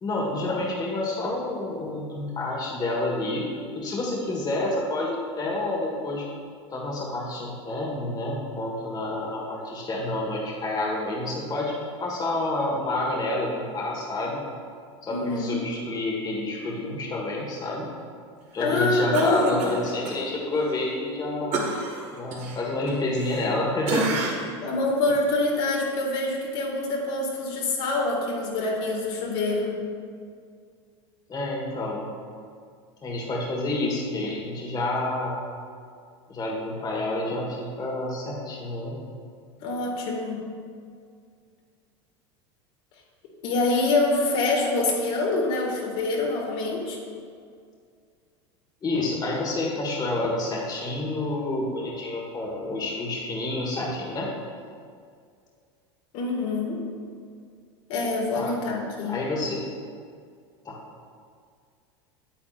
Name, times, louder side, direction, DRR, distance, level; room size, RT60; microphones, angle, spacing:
voice 1, 0.0-3.4 3.7-6.3 6.7-11.7 12.0-14.4 15.0-17.9 18.5-21.7 22.1-24.5 31.3-32.1 33.0-35.5 36.3-39.0 48.8-54.3 58.3-58.5 59.1-59.7 60.6-60.8, left 2 dB, 25° left, -3 dB, 1.5 m, -29 dB
voice 2, 15.1-15.6 18.6-19.7 24.6-29.7 39.6-40.4 43.4-47.0 56.1-56.8 57.9-59.2, left 2 dB, 65° left, -2 dB, 2.0 m, -25 dB
Cough, 19.1-20.2 20.6-20.7 21.5-23.6 23.9-24.6 25.1-25.2, right 3 dB, 50° right, 1.6 m, -30 dB
8.9 x 8.5 x 2.5 m, 2.2 s
hypercardioid pair, 95°, 15 cm